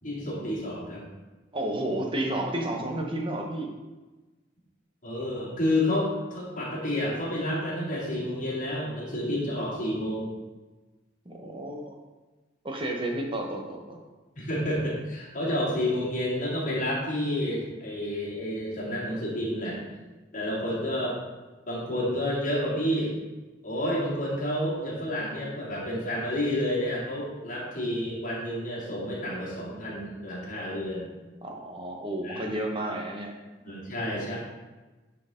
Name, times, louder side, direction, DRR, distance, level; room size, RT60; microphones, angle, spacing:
voice 1, 0.0-1.1 5.0-10.3 14.3-19.8 20.3-21.2 21.7-23.1 23.6-31.1 32.2-32.4 33.6-34.4, left 1 dB, 40° left, -7 dB, 2.5 m, -30 dB
voice 2, 1.5-3.7 11.2-12.0 12.6-14.0 31.4-33.3, right 1 dB, 25° right, 1 dB, 1.0 m, -31 dB
10.0 x 4.6 x 3.7 m, 1.2 s
head